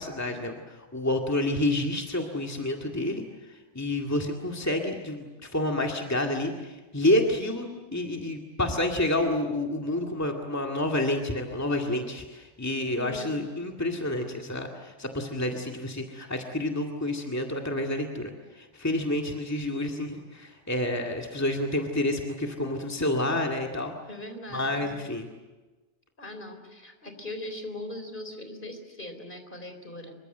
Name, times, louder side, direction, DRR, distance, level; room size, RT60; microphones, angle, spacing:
voice 1, 0.0-3.2 3.5-7.7 7.9-23.9 24.5-25.3, left 1 dB, 15° left, 1 dB, 2.1 m, -29 dB
voice 2, 13.0-13.5 24.1-24.9 26.2-30.2, left 1 dB, 50° left, 7 dB, 4.0 m, -40 dB
26.0 x 24.0 x 7.9 m, 1.2 s
omnidirectional pair, 1.1 m